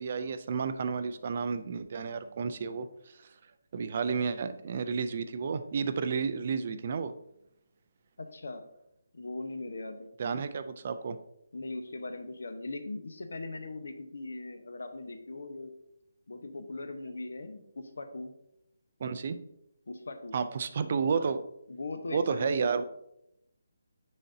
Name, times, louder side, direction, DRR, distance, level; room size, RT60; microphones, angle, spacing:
voice 1, 0.0-2.9 3.7-7.1 10.2-11.2 19.0-19.4 20.3-21.4 22.1-22.8, right 5 dB, 30° right, 11 dB, 0.3 m, -31 dB
voice 2, 8.2-8.6 9.1-10.1 11.5-15.7 16.3-18.3 19.9-20.3 21.7-22.8, left 2 dB, 70° left, 8 dB, 0.9 m, -40 dB
9.7 x 4.1 x 2.7 m, 0.82 s
hypercardioid pair, 180°, 0 cm